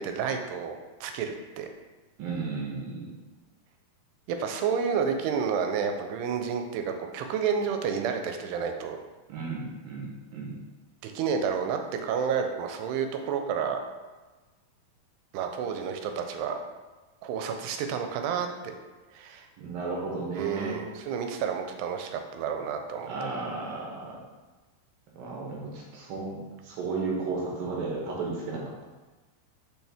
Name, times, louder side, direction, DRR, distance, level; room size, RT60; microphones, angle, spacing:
voice 1, 0.0-1.7 4.3-9.0 11.0-13.8 15.3-16.6 17.2-18.7 19.1-19.5 20.3-23.3, right 6 dB, 85° right, 5 dB, 2.7 m, -30 dB
voice 2, 2.2-3.1 9.3-10.6 19.6-20.8 23.1-24.2 25.2-28.8, right 3 dB, 70° right, -3 dB, 2.5 m, -34 dB
6.1 x 4.4 x 3.5 m, 1.2 s
omnidirectional pair, 4.6 m